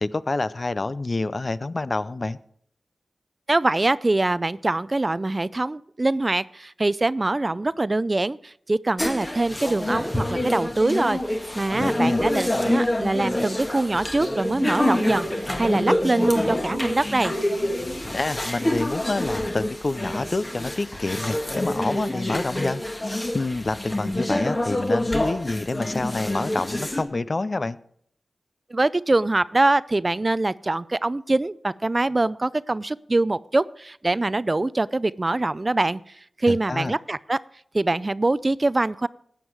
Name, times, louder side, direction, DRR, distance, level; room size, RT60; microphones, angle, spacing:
voice 1, 0.0-2.4 11.7-12.3 18.1-22.8 23.3-27.8 36.5-36.9, left 2 dB, 45° left, 15 dB, 0.5 m, -27 dB
voice 2, 3.5-11.2 11.6-17.3 28.7-36.0 36.4-37.4 37.7-39.1, right 2 dB, 35° right, 18 dB, 0.4 m, -23 dB
sound 1, 9.0-27.0, left 1 dB, 25° left, 1.7 m, -27 dB
14.5 x 9.2 x 4.7 m, 0.65 s
wide cardioid pair, 65°, 0 cm